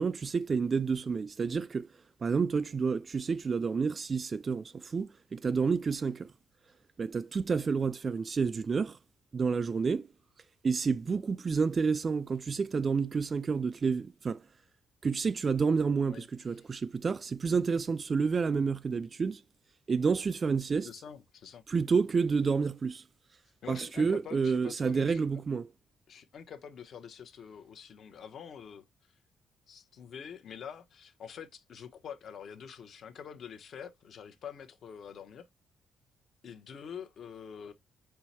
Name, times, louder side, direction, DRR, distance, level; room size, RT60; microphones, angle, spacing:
voice 1, 0.0-1.9 2.2-6.3 7.0-9.0 9.3-10.1 10.6-14.4 15.0-19.4 19.9-20.9 21.7-23.0 23.7-25.7, right 5 dB, 40° right, 0.3 m, -29 dB
voice 2, 20.8-21.6 23.6-25.3 26.1-28.8 29.7-35.5 36.4-37.7, left 7 dB, 60° left, 0.8 m, -46 dB
4.6 x 2.1 x 4.1 m
cardioid pair, 90°, 0 cm